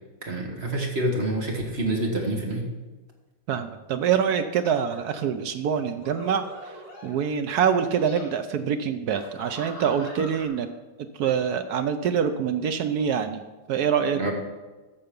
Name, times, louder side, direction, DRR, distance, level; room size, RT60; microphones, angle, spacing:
voice 1, 0.2-2.7 14.1-14.3, right 1 dB, 35° right, 0 dB, 1.6 m, -27 dB
voice 2, 3.5-6.8 7.0-10.7 11.0-13.4 13.7-14.2, right 7 dB, 75° right, 8 dB, 0.9 m, -25 dB
sound 1, 4.9-5.2 5.9-7.3 7.8-8.3 9.1-10.5, left 1 dB, 60° left, 4.1 m, -43 dB
11.5 x 6.8 x 5.2 m, 1.2 s
omnidirectional pair, 2.2 m